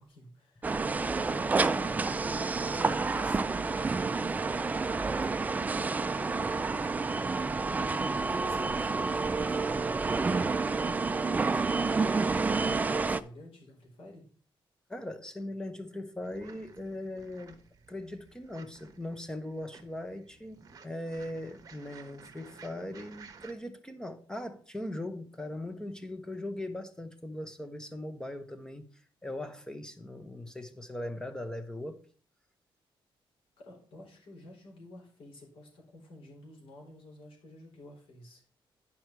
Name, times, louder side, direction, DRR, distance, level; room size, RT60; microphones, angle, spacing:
voice 1, 0.0-7.7 8.2-8.8 9.1-14.2 33.6-38.4, left 1 dB, 80° left, 0 dB, 4.1 m, -50 dB
sound 1, 0.6-13.2, right 4 dB, 15° right, 0.3 m, -29 dB
voice 2, 14.9-17.6 17.9-32.0, left 1 dB, 10° left, 9 dB, 0.9 m, -40 dB
sound 2, 16.2-23.5, right 5 dB, 40° right, 1.2 m, -54 dB
10.5 x 5.6 x 4.6 m, 0.43 s
wide cardioid pair, 160°, 9 cm